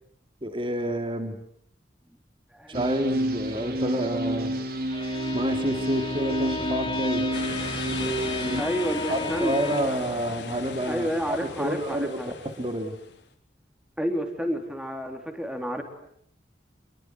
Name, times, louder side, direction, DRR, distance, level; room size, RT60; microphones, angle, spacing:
voice 1, 0.4-1.4 2.7-4.6 5.3-7.3 7.9-8.7 9.1-12.2 12.4-12.9, right 1 dB, 30° right, 7 dB, 3.3 m, -29 dB
voice 2, 2.5-2.8 8.5-10.0 10.9-12.3 14.0-15.8, equal, 5° right, 5 dB, 4.0 m, -30 dB
sound 1, 2.7-8.6, right 1 dB, 55° right, 3.9 m, -30 dB
Bowed string instrument, 4.7-10.1, left 3 dB, 30° left, 1.7 m, -34 dB
sound 2, 7.3-13.2, left 4 dB, 80° left, 3.7 m, -38 dB
27.0 x 22.5 x 9.6 m, 0.68 s
head